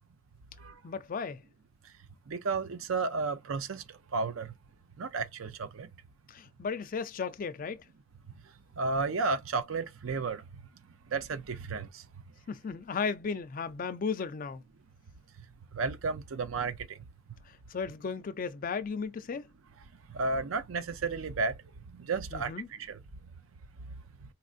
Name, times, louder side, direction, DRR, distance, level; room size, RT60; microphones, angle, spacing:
voice 1, 0.8-1.4 6.3-7.8 12.5-14.6 17.5-19.5 22.3-22.7, left 5 dB, 45° left, 0.4 m, -35 dB
voice 2, 2.3-3.8 4.1-4.5 5.0-5.9 8.8-10.4 11.1-12.0 15.7-16.8 20.1-21.5 21.9-22.5 22.9-23.0, right 4 dB, 80° right, 0.6 m, -32 dB
4.1 x 2.5 x 2.4 m
head